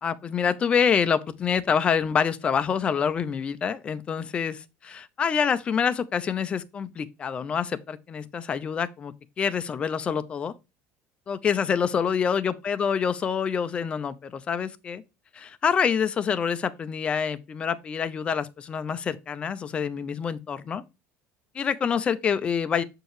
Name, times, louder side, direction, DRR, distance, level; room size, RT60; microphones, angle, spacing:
voice 1, 0.0-10.5 11.3-15.0 15.3-20.8 21.5-22.8, left 7 dB, 25° left, 0.4 m, -26 dB
6.7 x 4.5 x 3.2 m
cardioid pair, 165°, 5 cm